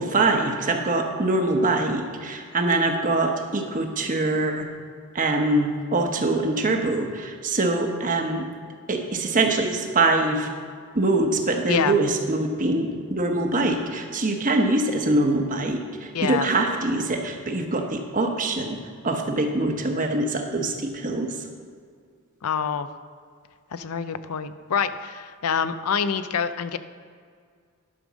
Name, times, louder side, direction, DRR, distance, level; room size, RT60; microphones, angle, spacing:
voice 1, 0.0-4.7 5.1-8.5 8.9-10.5 10.9-18.8 19.0-21.4, right 2 dB, 35° right, 4 dB, 1.0 m, -24 dB
voice 2, 16.1-16.5 22.4-22.9 23.7-26.8, left 6 dB, 85° left, 12 dB, 0.5 m, -26 dB
11.0 x 5.3 x 6.2 m, 2.1 s
head